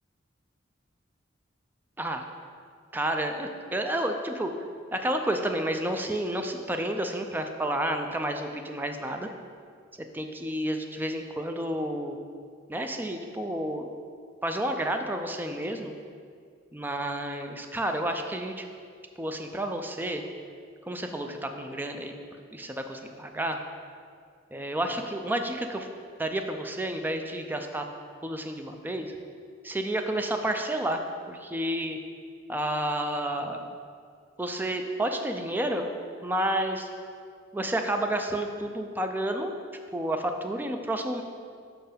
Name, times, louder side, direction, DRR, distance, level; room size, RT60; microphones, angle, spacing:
voice 1, 2.0-2.3 2.9-4.5 4.9-9.3 10.1-12.2 12.7-13.9 14.4-16.0 16.7-18.7 19.2-20.2 20.9-22.1 22.5-23.6 24.5-25.9 26.2-27.8 28.2-29.1 29.6-31.0 31.3-32.0 32.5-33.7 34.4-35.9 36.2-36.9 37.5-39.5 39.9-41.2, right 1 dB, 10° right, 5 dB, 0.4 m, -30 dB
5.8 x 4.5 x 5.0 m, 2.2 s
head